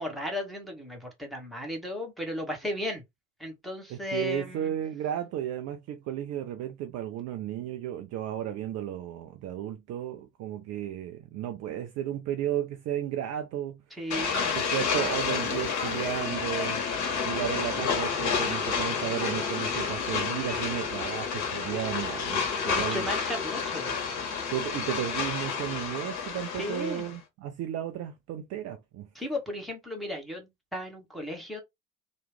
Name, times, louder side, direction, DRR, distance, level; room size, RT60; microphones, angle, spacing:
voice 1, 0.0-3.0 3.4-4.8 13.9-14.5 22.8-23.9 26.6-27.0 29.1-31.6, left 1 dB, ahead, 1.3 m, -35 dB
voice 2, 3.9-13.8 14.5-16.8 17.2-23.0 24.5-29.1, right 11 dB, 40° right, 0.6 m, -34 dB
sound 1, 14.1-27.2, left 6 dB, 45° left, 1.4 m, -30 dB
sound 2, 14.2-16.3, left 10 dB, 75° left, 0.5 m, -40 dB
3.0 x 2.3 x 3.3 m
figure-of-eight pair, 60°, 40 cm